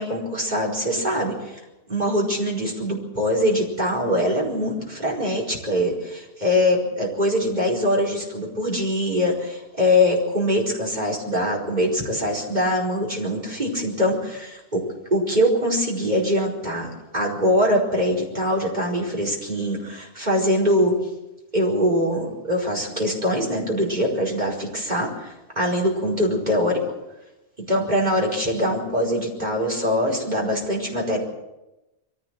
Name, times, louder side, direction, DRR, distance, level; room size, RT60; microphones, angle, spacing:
voice 1, 0.0-1.6 1.9-14.8 15.1-20.9 21.5-26.8 27.7-31.2, equal, 40° right, -1 dB, 5.0 m, -23 dB
22.5 x 16.0 x 7.7 m, 0.98 s
omnidirectional pair, 1.2 m